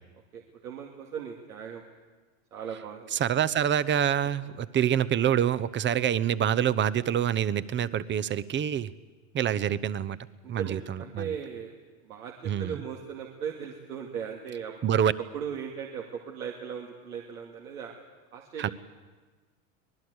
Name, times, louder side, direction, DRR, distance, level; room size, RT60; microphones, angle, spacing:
voice 1, 0.3-1.8 2.5-3.1 5.9-6.2 10.4-11.7 12.0-14.7 15.3-17.9 18.3-18.7, right 7 dB, 85° right, 1 dB, 2.5 m, -38 dB
voice 2, 3.1-8.9 9.3-10.2 10.5-11.3 12.4-12.8 14.8-15.1 18.6-18.7, right 9 dB, 25° right, 18 dB, 0.9 m, -26 dB
24.5 x 19.0 x 8.1 m, 1.3 s
hypercardioid pair, 100°, 42 cm